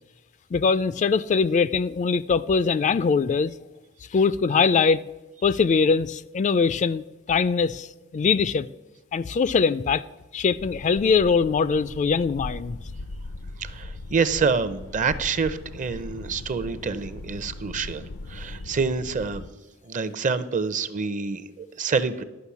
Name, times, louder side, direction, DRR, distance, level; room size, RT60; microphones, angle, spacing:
voice 1, 0.5-3.5 4.1-5.0 5.4-8.7 9.1-10.0 10.3-12.8, left 5 dB, 35° left, 0.3 m, -22 dB
sound 1, 10.6-19.5, left 2 dB, 85° left, 0.6 m, -39 dB
voice 2, 13.6-19.4 19.8-22.2, right 5 dB, 35° right, 0.6 m, -27 dB
11.5 x 6.0 x 8.3 m
head